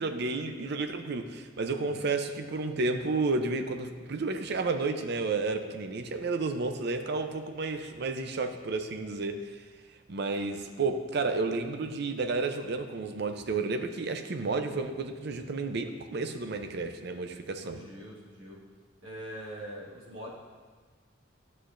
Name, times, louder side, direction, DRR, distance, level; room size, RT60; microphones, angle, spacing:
voice 1, 0.0-9.5 10.1-17.8, right 3 dB, 55° right, 7 dB, 0.5 m, -31 dB
voice 2, 17.6-18.6 19.0-20.3, equal, 85° right, -4 dB, 1.7 m, -43 dB
11.5 x 6.5 x 2.5 m, 1.6 s
head